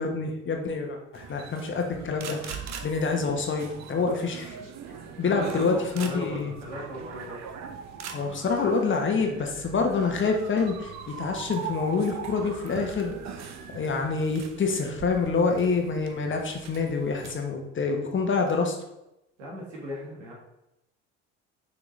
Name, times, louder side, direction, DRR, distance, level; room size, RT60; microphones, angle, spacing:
voice 1, 0.0-4.6 5.2-6.5 8.1-13.1 13.7-18.7, left 4 dB, 35° left, 3 dB, 1.2 m, -27 dB
sound 1, 1.1-17.3, right 6 dB, 50° right, 0.9 m, -41 dB
voice 2, 5.2-7.4 19.4-20.3, left 1 dB, 80° right, -3 dB, 2.0 m, -37 dB
6.3 x 4.7 x 3.2 m, 0.88 s
hypercardioid pair, 65°, 36 cm